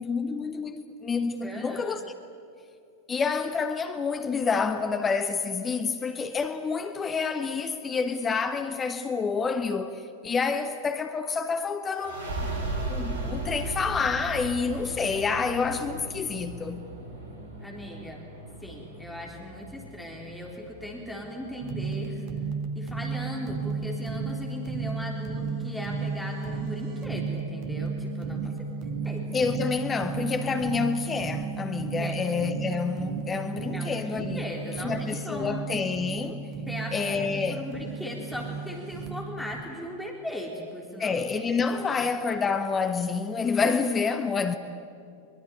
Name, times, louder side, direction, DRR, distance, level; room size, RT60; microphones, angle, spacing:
voice 1, 0.0-2.0 3.1-12.3 12.9-16.9 29.3-34.4 34.8-36.5 36.9-37.6 41.0-44.6, left 5 dB, 20° left, 1.2 m, -28 dB
voice 2, 1.4-2.0 17.6-18.2 18.6-22.2 22.8-28.7 29.0-29.3 32.0-32.2 33.7-35.6 36.7-41.2 41.8-42.0, left 1 dB, 5° left, 3.8 m, -38 dB
sound 1, 11.9-23.2, right 2 dB, 60° right, 5.3 m, -37 dB
sound 2, 21.6-39.6, right 4 dB, 40° right, 1.6 m, -34 dB
23.0 x 22.5 x 10.0 m
figure-of-eight pair, 90°, 0 cm